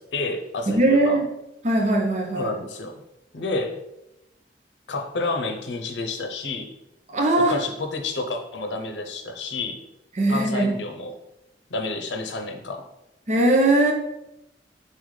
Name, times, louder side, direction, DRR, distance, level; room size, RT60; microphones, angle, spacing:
voice 1, 0.1-1.2 2.4-3.0 3.3-3.8 4.9-6.7 7.4-9.8 10.3-11.2 11.7-12.9, left 3 dB, 80° left, 5 dB, 0.6 m, -30 dB
voice 2, 0.7-1.3 1.6-2.5 7.1-7.6 10.2-10.7 13.3-13.9, right 2 dB, 40° right, 2 dB, 0.8 m, -20 dB
4.1 x 3.9 x 3.2 m, 0.88 s
head